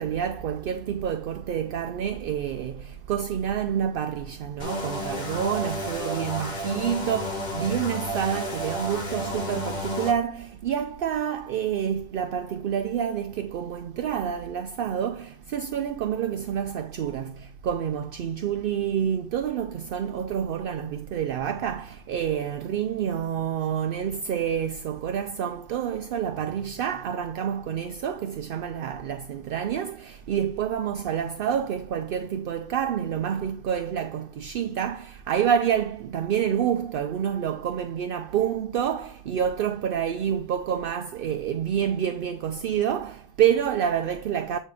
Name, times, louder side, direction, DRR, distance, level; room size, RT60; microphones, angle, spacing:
voice 1, 0.0-44.6, right 9 dB, 65° right, 0.7 m, -28 dB
sound 1, 4.6-10.1, left 1 dB, 45° left, 1.5 m, -32 dB
8.7 x 3.3 x 4.9 m
omnidirectional pair, 1.0 m